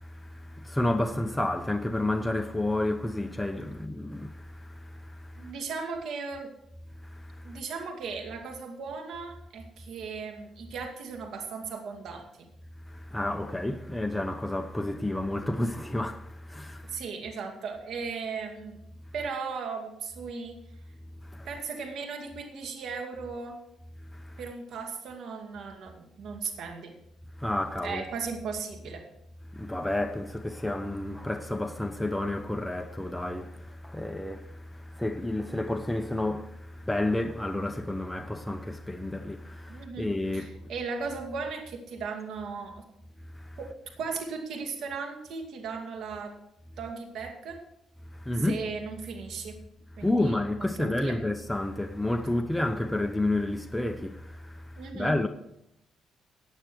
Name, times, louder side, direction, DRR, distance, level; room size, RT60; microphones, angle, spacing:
voice 1, 0.0-5.5 7.0-7.6 12.9-17.0 21.2-21.5 24.1-24.4 27.4-28.0 29.5-40.7 43.3-43.6 48.1-48.6 50.0-55.3, left 1 dB, 5° left, 0.7 m, -31 dB
voice 2, 5.4-6.5 7.4-12.5 16.8-18.8 19.1-20.5 21.4-23.6 24.4-26.9 27.8-29.0 39.7-40.1 40.3-42.8 43.6-43.7 44.0-46.3 46.8-47.6 48.4-49.6 50.0-51.2 54.8-55.1, right 5 dB, 75° right, 2.3 m, -37 dB
15.5 x 9.1 x 4.6 m
cardioid pair, 90°, 0 cm